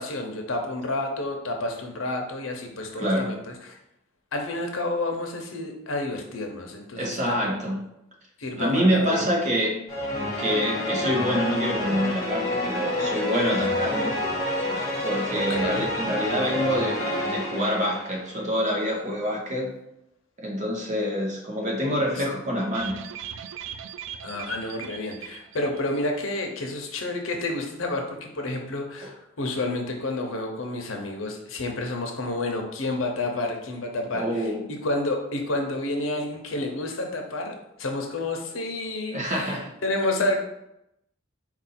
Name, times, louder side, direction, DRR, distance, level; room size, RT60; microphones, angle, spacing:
voice 1, 0.0-3.4 3.6-3.8 4.3-7.5 8.4-9.2 15.3-15.9 22.2-22.3 24.2-40.4, left 2 dB, 85° left, 3 dB, 0.8 m, -30 dB
voice 2, 3.0-3.3 6.9-7.8 8.6-9.8 10.2-14.2 15.0-19.8 20.4-23.0 29.0-29.1 34.1-34.6 39.1-39.7, equal, 40° right, -1 dB, 1.0 m, -26 dB
sound 1, 9.9-18.4, left 1 dB, 20° left, 1.1 m, -28 dB
sound 2, 22.7-26.2 26.5-26.6 26.9-27.0, right 9 dB, 65° right, 0.3 m, -39 dB
4.4 x 2.7 x 4.2 m, 0.83 s
head